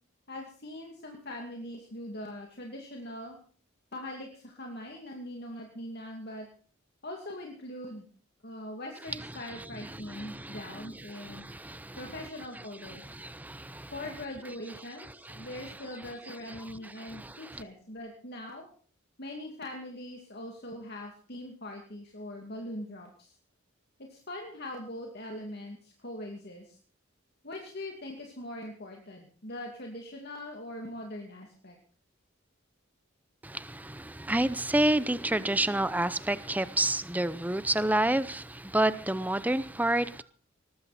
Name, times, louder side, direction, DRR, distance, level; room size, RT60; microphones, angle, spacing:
voice 1, 0.3-3.4 3.9-6.5 7.0-8.1 8.4-11.5 12.0-13.0 13.9-18.7 19.2-23.3 24.0-26.8 27.4-31.8, left 1 dB, 50° left, 2.5 m, -41 dB
voice 2, 9.2-12.3 12.6-13.9 15.0-15.8 16.3-17.6 33.4-40.2, right 1 dB, 10° right, 0.7 m, -30 dB
19.5 x 14.5 x 4.3 m
head